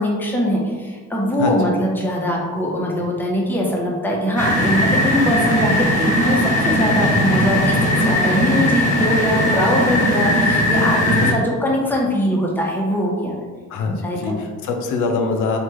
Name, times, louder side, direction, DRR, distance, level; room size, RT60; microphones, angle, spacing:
voice 1, 0.0-13.3 13.8-14.2, equal, 5° left, -3 dB, 0.7 m, -21 dB
sound 1, 4.4-11.3, equal, 25° left, 1.2 m, -18 dB
voice 2, 13.7-15.6, left 4 dB, 80° left, 3 dB, 0.5 m, -23 dB
3.2 x 2.2 x 3.0 m, 1.5 s
cardioid pair, 90°, 30 cm